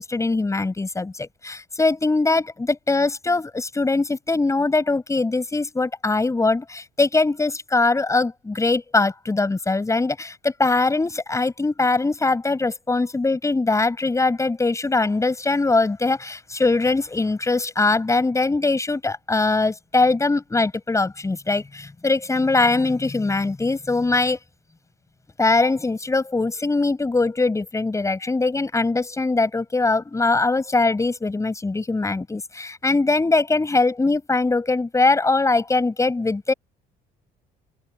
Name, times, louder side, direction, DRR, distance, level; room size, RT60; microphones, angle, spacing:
voice 1, 0.0-24.4 25.4-36.5, left 3 dB, 20° left, 7.6 m, -21 dB
open air
cardioid pair, 110°, 17 cm